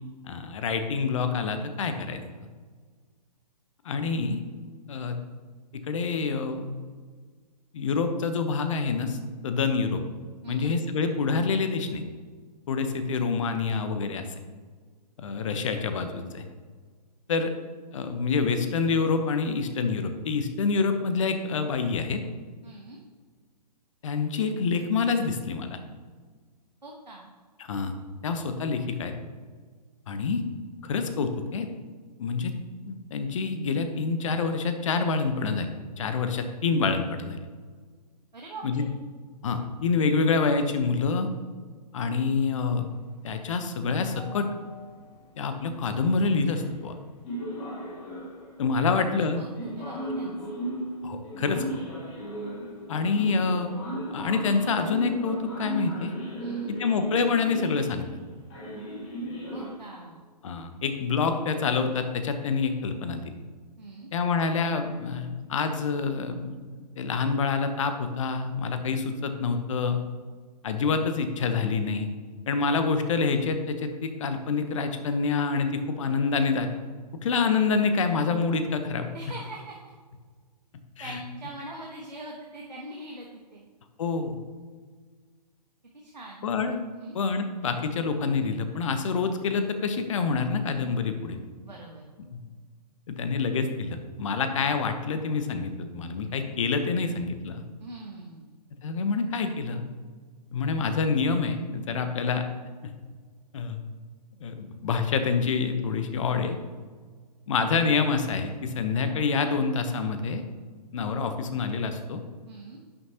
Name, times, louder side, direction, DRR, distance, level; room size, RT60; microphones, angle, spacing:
voice 1, 0.2-2.2 3.8-4.4 4.9-5.2 5.7-6.7 7.7-9.2 9.4-10.0 10.5-12.0 12.7-14.3 15.2-16.4 17.3-17.5 17.9-22.2 24.0-25.8 27.6-27.9 28.2-29.1 30.1-30.4 30.8-31.7 32.2-32.5 32.9-35.7 36.0-37.4 38.6-38.8 39.4-41.3 41.9-42.9 43.2-44.5 45.4-46.9 48.6-49.4 51.0-51.8 52.9-53.7 54.1-56.1 56.7-58.1 60.4-63.3 64.1-66.5 67.0-70.0 70.6-72.1 72.5-76.7 77.2-79.1 81.0-81.2 84.0-84.4 86.4-86.8 87.1-91.4 92.3-92.4 93.1-97.6 98.8-99.8 100.5-102.4 102.8-102.9 103.5-103.8 104.4-106.6 107.5-110.4 110.9-112.2, left 4 dB, 50° left, 8 dB, 1.0 m, -27 dB
voice 2, 22.6-23.0 26.8-27.3 38.3-38.9 48.8-49.0 49.4-49.5 49.8-50.5 56.4-56.7 59.5-60.2 63.8-64.1 79.1-79.9 81.0-83.7 85.9-86.5 86.9-87.2 91.6-92.0 97.8-98.6 112.5-112.8, right 2 dB, 85° right, -1 dB, 1.3 m, -42 dB
sound 1, 44.1-45.1 46.0-46.1 46.5-46.9 47.2-48.6 49.6-59.7, right 1 dB, 25° left, 2.1 m, -36 dB
10.5 x 6.4 x 2.9 m, 1.6 s
figure-of-eight pair, 125°, 21 cm